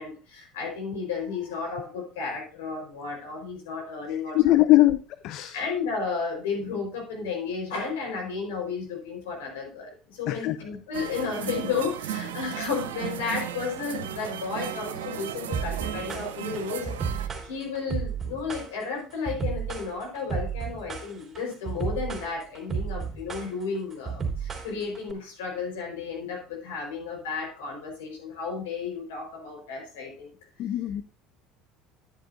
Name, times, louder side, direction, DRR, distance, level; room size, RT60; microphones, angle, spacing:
voice 1, 0.0-4.8 5.5-30.3, left 5 dB, 75° left, -1 dB, 4.6 m, -33 dB
voice 2, 4.1-5.6 10.3-10.6 30.6-31.0, left 16 dB, 60° left, 12 dB, 0.5 m, -22 dB
sound 1, 10.9-17.3, right 10 dB, 80° right, 0.7 m, -35 dB
sound 2, 15.5-25.1, right 5 dB, 15° right, 3.2 m, -32 dB
10.0 x 10.0 x 2.7 m, 0.35 s
hypercardioid pair, 70°, 0 cm